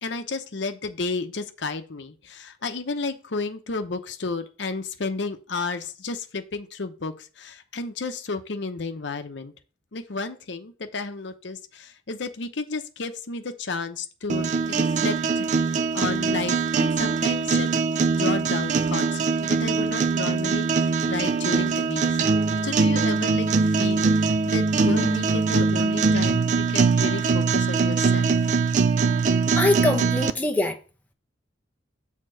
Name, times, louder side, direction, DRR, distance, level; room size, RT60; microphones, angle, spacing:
voice 1, 0.0-9.5 9.9-17.7 18.1-22.2 22.6-28.6, left 3 dB, 65° left, 0.8 m, -32 dB
sound 1, 14.3-30.3, right 4 dB, 40° right, 0.3 m, -22 dB
voice 2, 29.5-30.8, left 2 dB, 10° left, 0.7 m, -23 dB
6.6 x 3.6 x 6.2 m
head